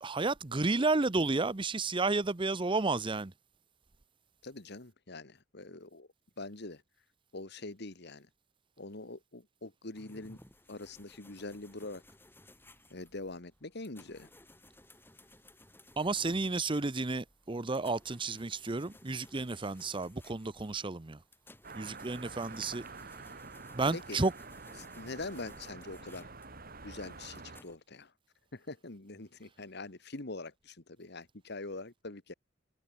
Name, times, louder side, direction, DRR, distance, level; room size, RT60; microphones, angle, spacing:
voice 1, 0.0-3.3 16.0-21.2 21.8-22.8 23.7-24.3, right 3 dB, 25° right, 0.8 m, -31 dB
voice 2, 4.4-6.1 6.4-6.8 7.3-8.3 8.8-10.4 10.7-12.0 12.9-14.3 23.9-24.2 24.8-26.3 26.8-28.1 28.5-32.3, left 2 dB, 60° left, 1.9 m, -44 dB
sound 1, 9.9-27.8, left 2 dB, 10° left, 4.7 m, -59 dB
sound 2, 21.6-27.6, right 4 dB, 50° right, 6.3 m, -48 dB
head